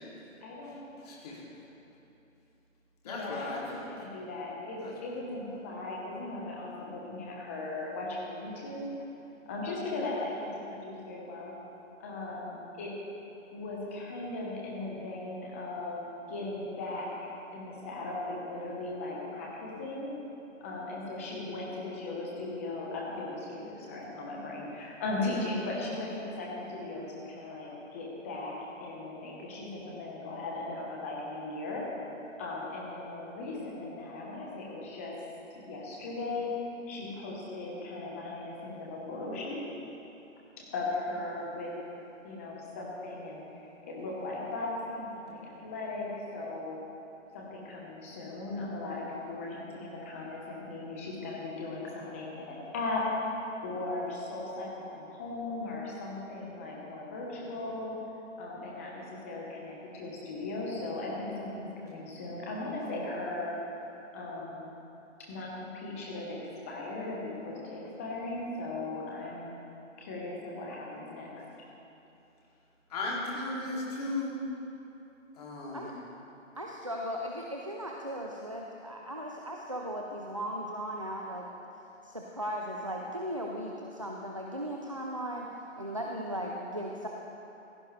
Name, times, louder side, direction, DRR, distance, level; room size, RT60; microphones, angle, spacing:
voice 1, 0.4-0.8 3.0-8.9 9.5-11.5 12.0-12.9 13.5-17.1 17.5-20.1 20.6-28.5 28.8-31.8 32.4-35.1 35.5-36.5 36.9-39.6 40.7-41.7 42.2-46.7 47.3-53.0 53.6-57.9 58.4-63.6 64.1-64.7 65.3-66.4 66.7-69.5 70.0-71.3, left 2 dB, 10° left, -3 dB, 0.9 m, -38 dB
voice 2, 3.1-3.9 4.8-4.9 72.9-74.4 75.4-75.9, left 2 dB, 30° left, -4 dB, 2.5 m, -35 dB
voice 3, 76.6-81.5 82.0-85.5 85.7-87.1, equal, 25° right, -1 dB, 0.4 m, -37 dB
15.5 x 15.0 x 3.2 m, 2.9 s
hypercardioid pair, 165°, 39 cm